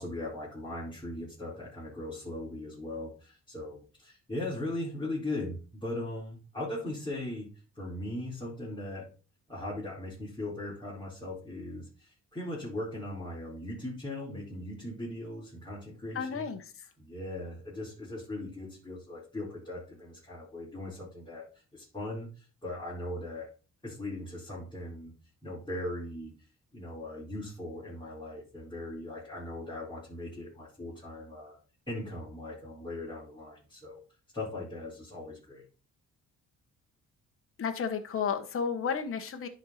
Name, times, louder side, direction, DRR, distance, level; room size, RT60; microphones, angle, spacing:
voice 1, 0.0-7.5 7.7-9.1 9.5-16.5 17.0-23.5 23.8-25.1 25.4-26.3 26.7-31.6 31.9-34.0 34.3-35.6, left 1 dB, 15° left, -9 dB, 4.5 m, -39 dB
voice 2, 16.1-16.9 37.6-39.5, left 6 dB, 45° left, 6 dB, 1.3 m, -32 dB
10.5 x 4.4 x 4.2 m, 0.36 s
cardioid pair, 90°, 30 cm